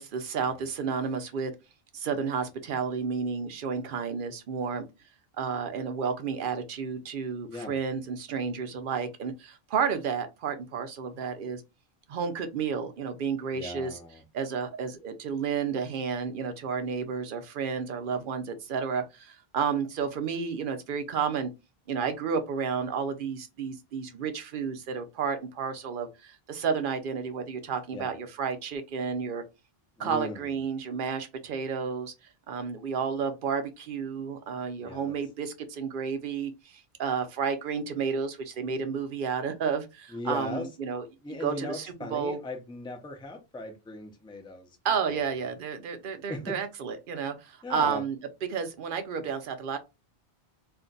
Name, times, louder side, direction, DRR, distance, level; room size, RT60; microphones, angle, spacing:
voice 1, 0.0-1.5 1.9-4.8 5.4-11.6 12.1-14.0 14.3-21.5 21.9-29.4 30.0-32.1 32.5-41.0 41.4-42.4 44.8-48.2 48.5-49.8, right 6 dB, 60° right, 0.7 m, -31 dB
voice 2, 13.5-14.2 27.9-28.1 30.0-30.5 34.8-35.2 40.1-40.7 41.2-45.2 46.3-46.6 47.6-48.0, left 2 dB, 5° left, 0.4 m, -38 dB
2.5 x 2.2 x 3.8 m
omnidirectional pair, 1.0 m